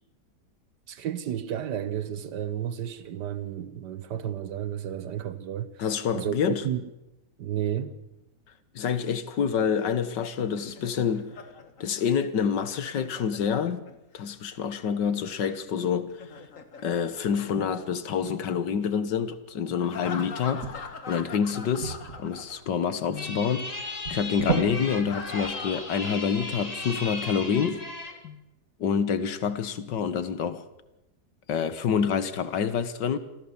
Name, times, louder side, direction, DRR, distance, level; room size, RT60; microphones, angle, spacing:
voice 1, 0.9-5.8 6.1-6.9 7.4-7.9, right 10 dB, 80° right, 1.6 m, -32 dB
voice 2, 5.8-6.7 8.8-11.3 11.8-13.8 14.1-16.2 16.8-20.7 21.1-27.8 28.2-28.4 28.8-30.7 31.5-33.2, left 7 dB, 85° left, 1.9 m, -27 dB
Laughter, 10.2-14.3 16.0-18.1 19.8-22.9 23.1-23.3 24.8-26.9, left 5 dB, 50° left, 1.9 m, -43 dB
sound 1, 20.6-26.8, right 4 dB, 50° right, 2.6 m, -36 dB
sound 2, 23.2-28.2, left 2 dB, 20° left, 2.3 m, -36 dB
26.0 x 15.5 x 7.1 m
omnidirectional pair, 1.8 m